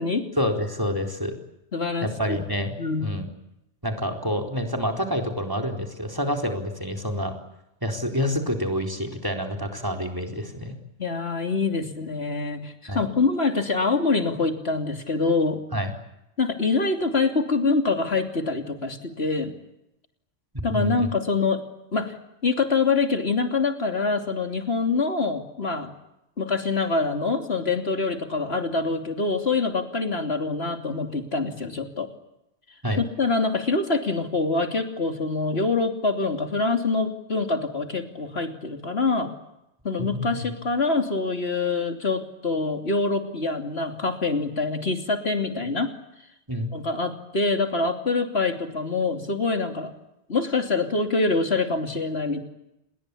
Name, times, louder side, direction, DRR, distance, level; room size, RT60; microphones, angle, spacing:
voice 1, 0.4-1.3 2.0-2.7 3.0-3.3 3.8-7.3 7.8-10.7 12.9-13.1 15.7-15.9 20.7-21.1 32.8-33.0 40.0-40.5 46.5-46.7, equal, 15° right, 3 dB, 4.3 m, -27 dB
voice 2, 1.7-2.4 2.8-3.1 11.0-15.6 16.4-19.5 20.6-21.6 21.9-22.1 22.4-25.9 26.4-32.1 33.2-39.3 39.8-45.9 46.7-49.9 50.3-52.4, left 3 dB, 55° left, 6 dB, 3.3 m, -25 dB
29.5 x 21.5 x 8.6 m, 0.88 s
omnidirectional pair, 1.2 m